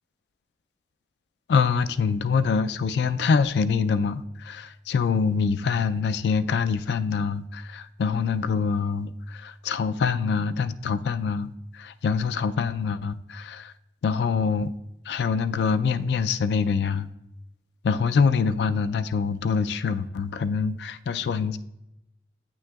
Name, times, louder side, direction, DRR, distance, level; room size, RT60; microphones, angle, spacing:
voice 1, 1.5-13.7 14.0-14.7 15.1-17.1 17.8-21.6, left 5 dB, 75° left, 0.3 m, -25 dB
8.3 x 6.1 x 2.3 m
head